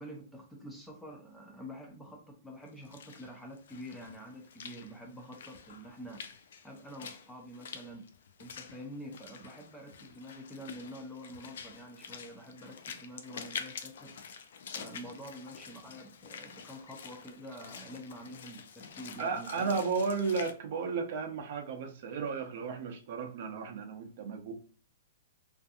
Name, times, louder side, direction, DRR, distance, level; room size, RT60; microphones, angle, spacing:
voice 1, 0.0-6.4 6.6-8.0 8.4-14.2 14.8-19.8, equal, 5° left, 1 dB, 0.5 m, -47 dB
Walk footsteps / Splash splatter, 2.7-20.5, left 6 dB, 70° left, 0.4 m, -47 dB
voice 2, 19.2-24.5, right 5 dB, 55° right, 5 dB, 0.6 m, -34 dB
2.5 x 2.5 x 2.4 m, 0.41 s
hypercardioid pair, 150°, 0 cm